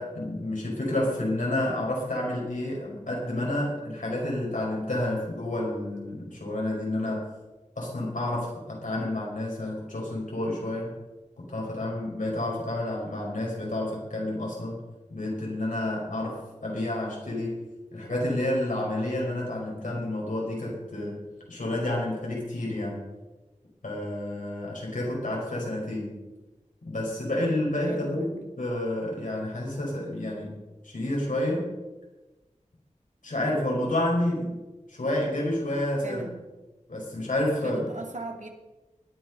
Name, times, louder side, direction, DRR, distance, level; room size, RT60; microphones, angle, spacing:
voice 1, 0.0-7.3 7.8-10.9 11.4-14.8 15.1-17.6 17.9-23.0 23.8-26.2 26.8-28.3 28.6-30.6 30.8-31.7 33.2-34.6 34.9-36.2 36.9-37.9, left 1 dB, 90° left, -3 dB, 5.8 m, -30 dB
voice 2, 27.9-28.5 36.0-36.3 37.6-38.5, right 2 dB, 70° right, 2 dB, 2.7 m, -38 dB
19.5 x 9.7 x 5.6 m, 1.1 s
wide cardioid pair, 50°, 13 cm